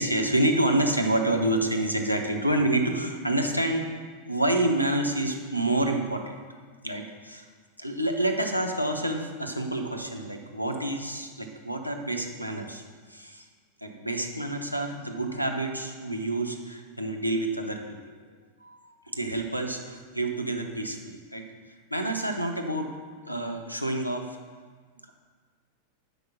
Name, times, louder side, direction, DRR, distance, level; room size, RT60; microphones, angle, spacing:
voice 1, 0.0-3.9 4.2-6.4 6.8-7.4 7.8-12.8 13.1-13.5 13.8-18.0 18.6-21.5 21.9-23.0 23.2-24.4, right 1 dB, 90° left, 5 dB, 0.8 m, -28 dB
7.9 x 5.3 x 6.2 m, 1.5 s
figure-of-eight pair, 90°, 0 cm